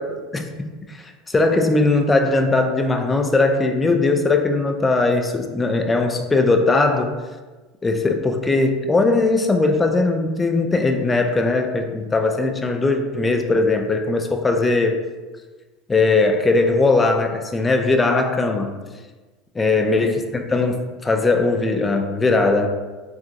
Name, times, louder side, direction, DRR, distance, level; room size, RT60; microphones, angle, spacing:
voice 1, 0.0-7.1 7.8-15.0 15.9-18.8 19.6-22.7, left 3 dB, 20° left, 5 dB, 0.3 m, -19 dB
3.6 x 2.4 x 2.5 m, 1.3 s
hypercardioid pair, 80°, 0 cm